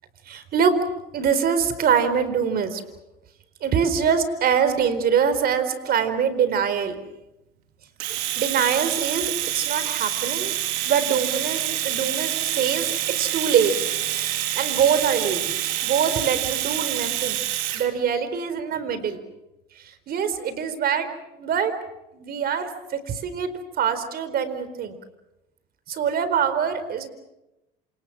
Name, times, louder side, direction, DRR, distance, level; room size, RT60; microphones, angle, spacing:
voice 1, 0.2-0.8 1.1-2.8 3.6-7.0 8.1-10.5 10.9-13.7 14.3-17.4 17.7-19.2 19.8-21.1 21.3-21.7 22.1-23.5 23.8-25.0 25.9-27.1, right 7 dB, 50° right, 11 dB, 4.4 m, -24 dB
Domestic sounds home sounds, 8.0-17.9, right 13 dB, 85° right, 3.2 m, -27 dB
28.0 x 27.5 x 6.2 m, 0.93 s
supercardioid pair, 105°, 20 cm